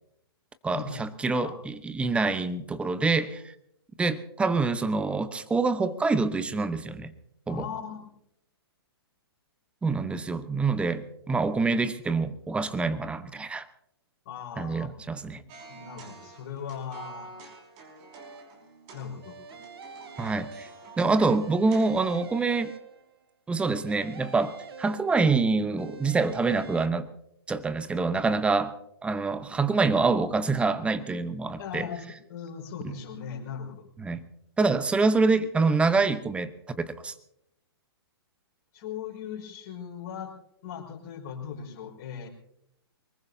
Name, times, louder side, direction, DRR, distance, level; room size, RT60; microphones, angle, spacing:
voice 1, 0.6-3.5 4.0-7.1 7.5-7.6 9.8-13.6 14.6-15.4 20.2-20.7 21.0-22.7 23.5-27.1 27.5-28.8 29.0-31.9 32.8-32.9 34.0-34.2 34.6-37.1, right 4 dB, 10° right, 13 dB, 0.9 m, -26 dB
voice 2, 7.5-8.1 14.2-14.9 15.3-17.3 18.9-19.4 31.6-33.8 38.7-40.3 40.6-42.3, left 7 dB, 45° left, -1 dB, 5.6 m, -38 dB
sound 1, 15.5-22.2, right 4 dB, 35° right, 5.4 m, -48 dB
sound 2, 18.1-18.7 19.2-21.1 21.4-23.2 23.6-25.4 25.8-26.9, right 5 dB, 70° right, 1.9 m, -46 dB
23.5 x 21.0 x 2.8 m, 0.76 s
figure-of-eight pair, 120°, 13 cm